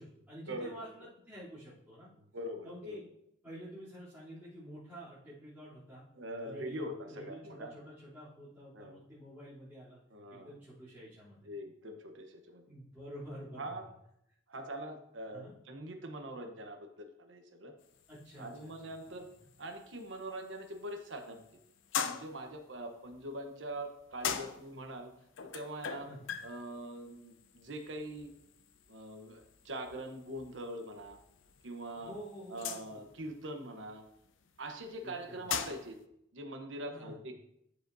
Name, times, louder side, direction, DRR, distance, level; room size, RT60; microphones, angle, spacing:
voice 1, 0.0-2.1 2.6-3.0 3.4-6.0 6.4-10.0 10.3-11.5 12.7-13.8 15.3-15.5 18.1-18.9 19.2-19.3 26.0-26.3 31.9-33.0 35.0-35.5 36.8-37.2, equal, 10° right, -15 dB, 3.1 m, -49 dB
voice 2, 2.3-3.0 6.1-7.7 8.7-8.9 10.1-10.5 11.4-12.7 13.6-13.8 14.5-17.7 18.4-19.3 19.6-21.4 22.0-25.1 25.5-26.1 26.4-28.3 28.9-31.2 31.6-32.2 32.5-34.0 34.6-36.0 36.3-37.3, right 1 dB, 80° right, 4 dB, 1.0 m, -43 dB
sound 1, 17.8-36.0, left 7 dB, 90° left, 0.6 m, -44 dB
13.5 x 5.0 x 2.7 m, 0.78 s
head